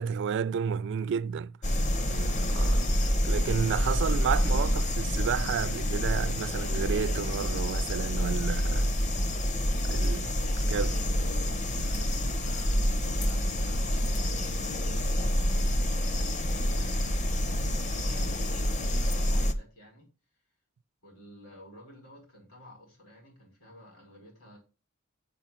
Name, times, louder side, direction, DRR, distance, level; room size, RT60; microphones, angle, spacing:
voice 1, 0.0-1.6 2.1-2.9 3.2-8.9 9.8-10.3 10.7-11.0 11.8-11.9, right 7 dB, 55° right, 0.3 m, -32 dB
sound 1, 1.6-19.5, equal, 35° left, 0.7 m, -27 dB
voice 2, 10.2-11.1 11.4-17.0 17.3-20.1 21.0-24.6, equal, 70° left, 5.0 m, -52 dB
6.7 x 6.2 x 5.9 m
head